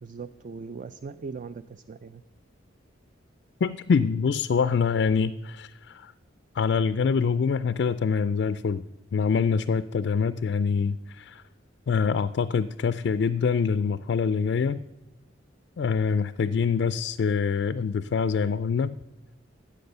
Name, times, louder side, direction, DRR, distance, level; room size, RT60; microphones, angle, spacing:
voice 1, 0.0-2.2, right 4 dB, 40° right, 14 dB, 0.3 m, -39 dB
voice 2, 3.6-6.1 6.6-8.8 9.1-11.4 11.9-14.8 15.8-19.0, left 5 dB, 60° left, 13 dB, 0.3 m, -25 dB
13.5 x 8.5 x 6.7 m, 1.1 s
head